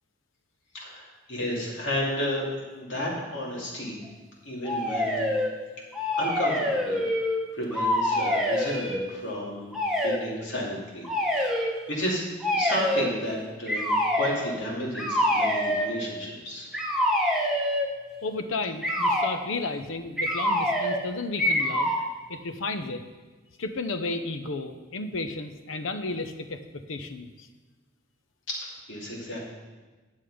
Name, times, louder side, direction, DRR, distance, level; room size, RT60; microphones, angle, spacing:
voice 1, 0.7-4.0 4.4-5.3 6.2-9.7 10.0-11.1 11.5-16.7 28.5-29.5, equal, 65° left, -4 dB, 2.8 m, -32 dB
sound 1, 4.6-5.5 5.9-7.4 7.7-9.0 9.7-10.2 11.0-11.7 12.4-13.1 13.7-14.4 14.9-15.9 16.7-17.9 18.8-19.3 20.2-21.0 21.4-22.0, left 1 dB, ahead, 1.1 m, -25 dB
voice 2, 18.2-21.9 22.3-23.0 23.6-27.5, left 3 dB, 85° left, 9 dB, 0.8 m, -33 dB
9.6 x 7.5 x 5.0 m, 1.3 s
head